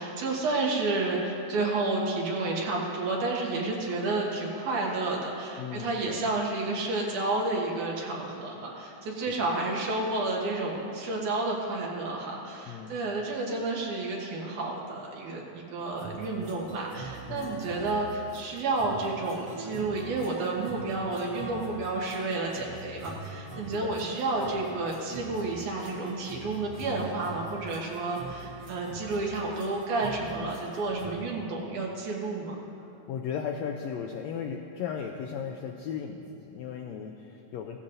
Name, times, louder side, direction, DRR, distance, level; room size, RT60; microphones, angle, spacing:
voice 1, 0.0-32.5, right 2 dB, 75° right, -2 dB, 2.9 m, -31 dB
voice 2, 5.6-6.2 9.3-9.4 12.7-13.0 17.3-17.5 23.6-24.0 33.1-37.8, left 7 dB, 80° left, 2 dB, 1.5 m, -36 dB
sound 1, 15.8-31.1, right 2 dB, 50° right, 1.1 m, -44 dB
16.5 x 13.5 x 2.6 m, 2.8 s
omnidirectional pair, 3.6 m